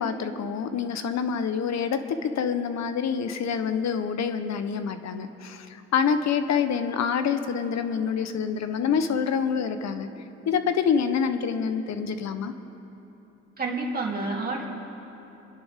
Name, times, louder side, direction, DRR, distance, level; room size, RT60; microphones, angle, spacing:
voice 1, 0.0-10.1 10.5-12.5, left 6 dB, 60° left, 9 dB, 1.0 m, -26 dB
voice 2, 13.6-14.7, right 3 dB, 30° right, -3 dB, 2.9 m, -29 dB
28.0 x 10.5 x 3.7 m, 3.0 s
cardioid pair, 90°, 30 cm